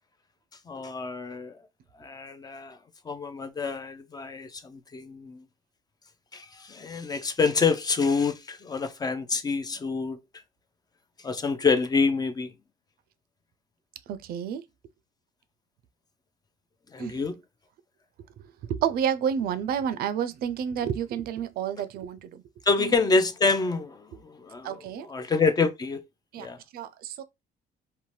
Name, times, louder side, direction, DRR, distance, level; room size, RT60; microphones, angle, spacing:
voice 1, 0.7-1.5 2.0-2.8 3.1-5.4 6.3-10.2 11.2-12.5 16.9-17.4 22.7-26.0 26.4-26.6, left 4 dB, 25° left, 0.4 m, -27 dB
voice 2, 14.1-14.6 17.0-17.1 18.7-22.3 22.8-22.9 24.6-25.1 26.3-26.5 26.7-27.2, right 8 dB, 65° right, 0.4 m, -29 dB
2.7 x 2.1 x 3.1 m
cardioid pair, 110°, 17 cm